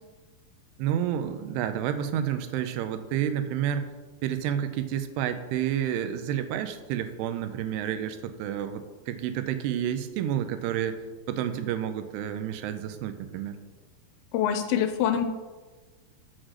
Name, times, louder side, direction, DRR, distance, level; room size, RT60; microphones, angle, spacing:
voice 1, 0.8-3.9 4.2-11.0 11.3-13.6, right 10 dB, 90° right, 9 dB, 2.8 m, -30 dB
voice 2, 14.3-15.3, left 9 dB, 80° left, 8 dB, 2.3 m, -25 dB
6.3 x 6.1 x 6.4 m, 1.3 s
omnidirectional pair, 4.7 m